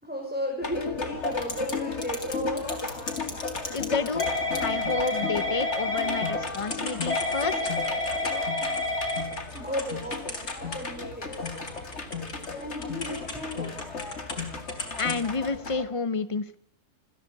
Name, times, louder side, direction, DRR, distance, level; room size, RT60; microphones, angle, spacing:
voice 1, 0.0-2.7 9.5-11.3 12.6-13.7, equal, 5° right, -1 dB, 4.8 m, -34 dB
sound 1, 0.6-15.9, left 4 dB, 45° left, 2.4 m, -35 dB
Typing / Telephone, 1.3-1.7 2.0-11.0 11.3-14.4 14.7-15.3, left 2 dB, 80° left, 4.1 m, -30 dB
voice 2, 3.7-4.3 4.5-7.7 15.0-16.6, left 4 dB, 25° left, 14 dB, 0.9 m, -30 dB
27.5 x 10.5 x 9.6 m, 0.70 s
omnidirectional pair, 1.6 m